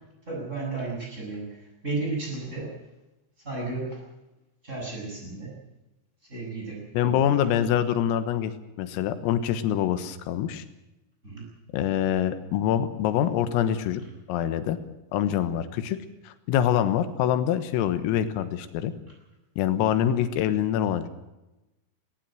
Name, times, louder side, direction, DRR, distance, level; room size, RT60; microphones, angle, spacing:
voice 1, 0.3-2.8 3.4-4.0 4.6-5.5 6.3-7.4 11.2-11.5, right 3 dB, 15° right, -2 dB, 7.6 m, -33 dB
voice 2, 7.0-8.5 8.8-10.6 11.7-14.0 14.3-14.8 15.1-16.0 16.3-18.9 19.6-21.1, left 10 dB, 90° left, 11 dB, 4.0 m, -25 dB
19.0 x 18.5 x 7.7 m, 0.98 s
omnidirectional pair, 5.9 m